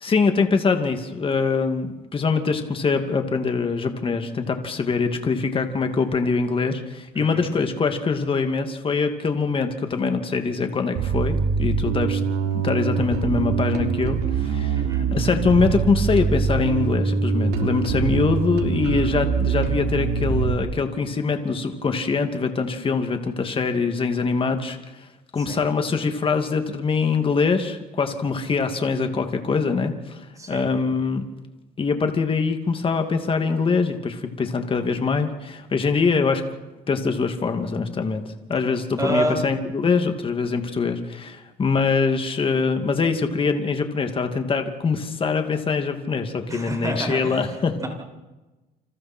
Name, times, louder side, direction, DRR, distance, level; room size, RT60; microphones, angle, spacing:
voice 1, 0.0-12.2 12.5-14.8 15.1-31.2 31.8-36.4 36.9-38.2 38.5-47.9, left 4 dB, 30° left, 6 dB, 2.5 m, -23 dB
voice 2, 7.1-7.5 14.7-15.1 25.5-25.6 30.4-30.7 39.0-39.4 46.5-47.4 47.8-47.9, right 1 dB, 20° right, 1 dB, 7.1 m, -28 dB
Bass guitar, 11.0-20.6, right 6 dB, 80° right, 2.8 m, -24 dB
29.0 x 26.5 x 4.5 m, 1.1 s
cardioid pair, 110°, 17 cm